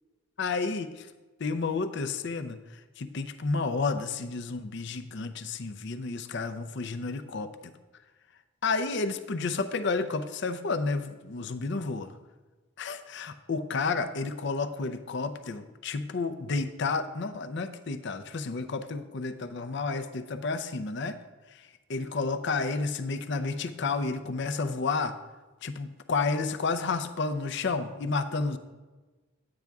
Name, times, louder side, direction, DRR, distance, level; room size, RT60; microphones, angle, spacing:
voice 1, 0.4-1.1 1.4-2.6 3.0-7.7 8.6-12.1 12.8-21.2 21.9-25.1 25.6-28.6, left 4 dB, 55° left, 9 dB, 0.6 m, -31 dB
10.5 x 8.7 x 3.5 m, 1.3 s
head